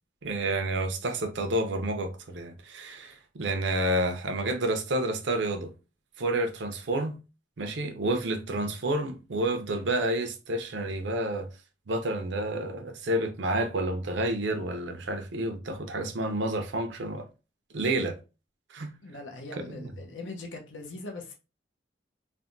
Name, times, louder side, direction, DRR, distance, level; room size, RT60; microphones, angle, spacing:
voice 1, 0.2-5.7 6.2-7.2 7.6-11.5 11.9-17.2 17.7-18.2 18.7-18.9 19.7-19.8, right 1 dB, 75° right, 0.6 m, -29 dB
voice 2, 19.0-21.3, left 2 dB, 85° left, 0.7 m, -41 dB
3.4 x 2.2 x 2.5 m
head